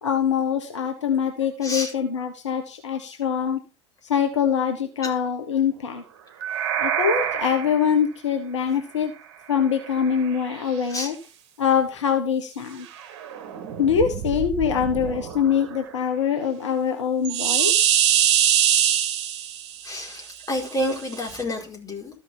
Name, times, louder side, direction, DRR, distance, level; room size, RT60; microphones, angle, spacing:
voice 1, 0.0-3.6 4.1-6.0 6.8-9.1 9.5-11.1 11.6-12.9 13.8-17.9, left 7 dB, 75° left, 5 dB, 1.4 m, -24 dB
voice 2, 1.6-1.9 5.0-5.1 10.9-11.1 13.6-13.8 19.8-22.2, left 1 dB, 20° left, 1 dB, 5.0 m, -29 dB
sound 1, 6.4-7.8 10.0-10.2 13.1-15.6 17.2-19.9 21.3-21.4, right 9 dB, 60° right, 1.6 m, -23 dB
13.5 x 5.8 x 4.3 m, 0.33 s
figure-of-eight pair, 75°, 15 cm